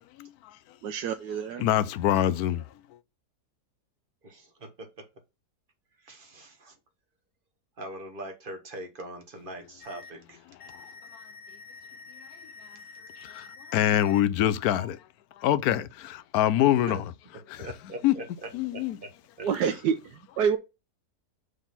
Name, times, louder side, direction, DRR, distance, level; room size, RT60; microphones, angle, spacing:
voice 1, 0.8-1.7 19.4-20.6, right 7 dB, 90° right, 1.3 m, -28 dB
voice 2, 1.6-2.6 10.7-10.8 13.2-15.0 15.4-17.0 18.0-18.1 18.5-19.0, left 12 dB, 75° left, 1.0 m, -24 dB
voice 3, 4.2-5.1 6.0-6.8 7.8-10.4 16.7-17.0 17.6-19.5, right 1 dB, 35° right, 1.4 m, -42 dB
sound 1, 9.8-10.1 10.6-14.2 14.7-14.9, left 4 dB, 30° left, 0.7 m, -47 dB
6.5 x 3.8 x 5.7 m
omnidirectional pair, 1.7 m